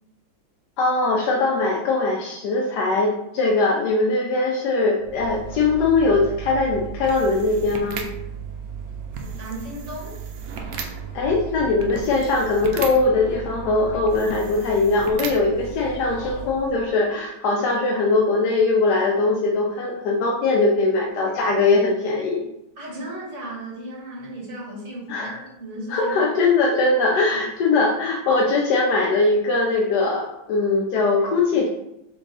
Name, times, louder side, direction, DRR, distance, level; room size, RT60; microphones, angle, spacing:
voice 1, 0.8-8.0 11.1-22.5 25.1-25.4 25.9-31.7, left 3 dB, 70° left, -2 dB, 1.1 m, -21 dB
sound 1, 5.0-17.0, right 6 dB, 70° right, 0.9 m, -35 dB
voice 2, 9.2-10.2 22.8-26.2, right 1 dB, 40° right, -5 dB, 1.8 m, -35 dB
3.7 x 3.5 x 4.0 m, 0.84 s
omnidirectional pair, 2.0 m